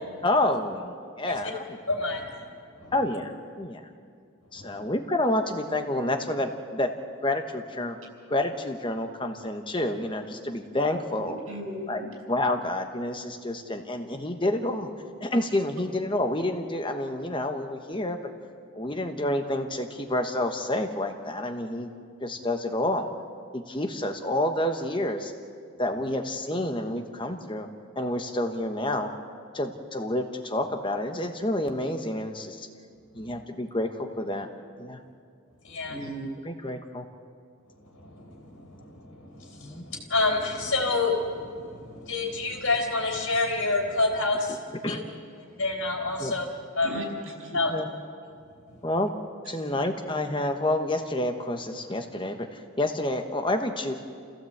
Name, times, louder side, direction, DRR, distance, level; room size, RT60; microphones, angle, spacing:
voice 1, 0.2-1.8 2.9-3.3 3.6-3.8 4.5-6.9 7.2-8.0 8.3-11.3 11.9-12.0 12.3-14.9 15.2-18.2 18.8-21.9 22.2-23.1 23.5-25.3 25.8-27.7 28.0-29.1 29.5-32.7 33.2-34.5 34.8-35.0 36.4-37.0 39.6-39.8 44.8-45.0 46.2-46.3 47.7-47.9 48.8-49.1 49.5-53.9, left 1 dB, 25° left, 5 dB, 1.1 m, -29 dB
voice 2, 1.9-2.3 2.8-2.9 4.6-4.9 33.2-33.4 35.6-36.0 37.9-44.6 44.9-45.0 45.6-46.5 46.8-47.0 47.5-47.7 48.7-48.8, left 3 dB, 70° left, 1 dB, 4.3 m, -28 dB
voice 3, 11.2-12.1 35.9-36.3 46.8-47.6 49.5-49.6, right 1 dB, 80° right, 2 dB, 5.4 m, -37 dB
27.0 x 16.0 x 8.0 m, 2.2 s
head